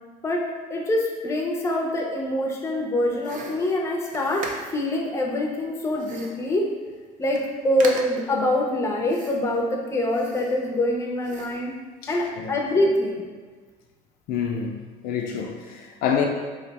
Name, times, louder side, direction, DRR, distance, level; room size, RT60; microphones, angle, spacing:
voice 1, 0.2-6.7 7.2-11.7 12.1-13.3, left 1 dB, 15° left, -1 dB, 0.5 m, -25 dB
sound 1, 3.2-4.9 6.0-6.5 6.9-7.0 7.2-7.5 7.8-8.3 9.1-9.6 10.1-10.9 11.2-11.7, right 3 dB, 55° right, 0.5 m, -38 dB
voice 2, 14.3-16.3, left 7 dB, 65° left, 1 dB, 0.4 m, -27 dB
2.6 x 2.1 x 4.0 m, 1.4 s
cardioid pair, 105°, 16 cm